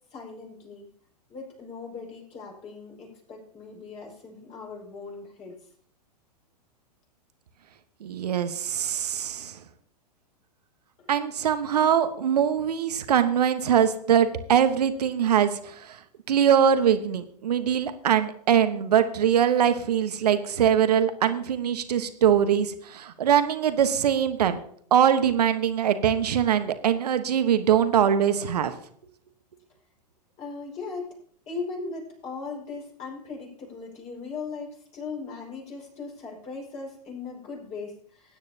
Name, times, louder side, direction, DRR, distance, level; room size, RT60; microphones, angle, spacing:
voice 1, 0.1-0.9 1.3-5.6 11.0-11.1 30.4-31.2 31.5-38.4, left 4 dB, 30° left, -2 dB, 5.2 m, -38 dB
voice 2, 8.0-9.6 11.1-16.0 16.3-24.6 24.9-28.7, right 9 dB, 70° right, 10 dB, 1.2 m, -22 dB
19.5 x 9.6 x 2.8 m, 0.62 s
figure-of-eight pair, 105°, 21 cm